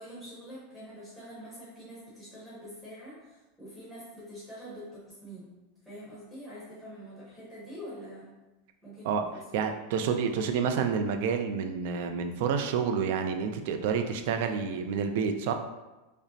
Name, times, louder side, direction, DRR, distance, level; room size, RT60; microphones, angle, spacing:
voice 1, 0.0-5.5 5.8-8.3 8.8-9.6, equal, 5° left, -9 dB, 1.1 m, -45 dB
voice 2, 9.5-15.5, right 6 dB, 60° right, 6 dB, 0.4 m, -29 dB
5.1 x 2.0 x 2.8 m, 1.1 s
supercardioid pair, 150°, 0 cm